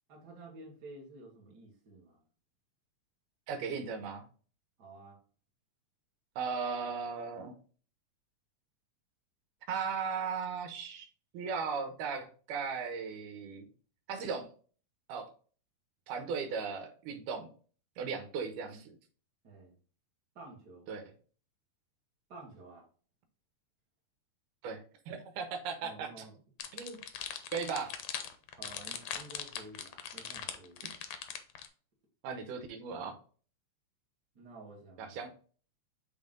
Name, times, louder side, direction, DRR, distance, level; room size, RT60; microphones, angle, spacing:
voice 1, 0.1-2.2 4.8-5.2 19.4-19.8 20.3-20.9 22.3-22.9 25.8-26.3 28.5-30.9 34.3-35.2, right 2 dB, 35° right, -2 dB, 2.2 m, -51 dB
voice 2, 3.5-4.3 6.4-7.5 9.7-11.1 11.3-13.7 14.1-14.5 15.1-15.3 16.1-17.5 18.0-19.0 20.9-21.1 24.6-26.2 26.7-27.0 27.5-27.9 32.2-33.2 35.0-35.3, right 5 dB, 85° right, 7 dB, 2.4 m, -37 dB
sound 1, 26.6-31.7, left 9 dB, 75° left, 1.5 m, -40 dB
7.2 x 3.6 x 3.7 m, 0.41 s
omnidirectional pair, 3.6 m